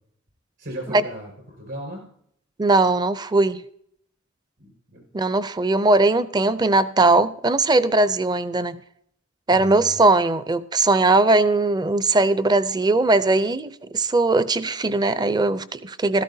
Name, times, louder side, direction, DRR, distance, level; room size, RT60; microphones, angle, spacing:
voice 1, 0.6-2.1 4.6-5.1 9.5-10.0, right 1 dB, 65° right, 5.3 m, -36 dB
voice 2, 2.6-3.6 5.1-8.8 9.5-16.2, right 2 dB, 20° right, 0.5 m, -19 dB
15.5 x 13.0 x 2.7 m
head